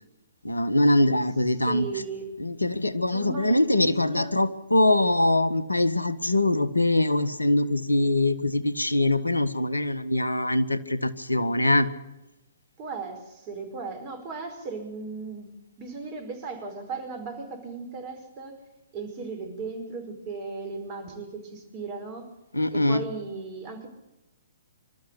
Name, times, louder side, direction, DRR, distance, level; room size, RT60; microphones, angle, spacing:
voice 1, 0.4-1.9 2.4-11.9 22.5-23.0, left 1 dB, 85° left, 14 dB, 1.3 m, -23 dB
voice 2, 1.6-2.5 3.1-4.4 12.8-15.5 15.8-18.6 18.9-22.3 22.7-23.9, right 4 dB, 30° right, 5 dB, 5.2 m, -37 dB
26.0 x 13.0 x 8.4 m, 0.97 s
figure-of-eight pair, 125°, 0 cm